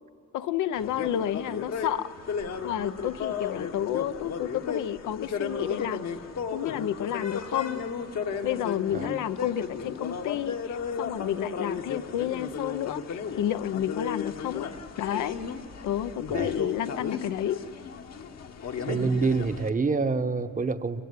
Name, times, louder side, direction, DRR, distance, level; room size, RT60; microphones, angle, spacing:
voice 1, 0.3-2.1 2.6-6.1 6.5-7.8 8.4-14.7 15.0-15.4 15.8-17.6, left 11 dB, 80° left, 11 dB, 0.7 m, -30 dB
sound 1, 0.7-19.7, left 6 dB, 60° left, 1.2 m, -34 dB
voice 2, 18.9-21.0, right 4 dB, 25° right, 9 dB, 0.9 m, -26 dB
26.0 x 15.0 x 9.6 m, 2.7 s
cardioid pair, 90°, 30 cm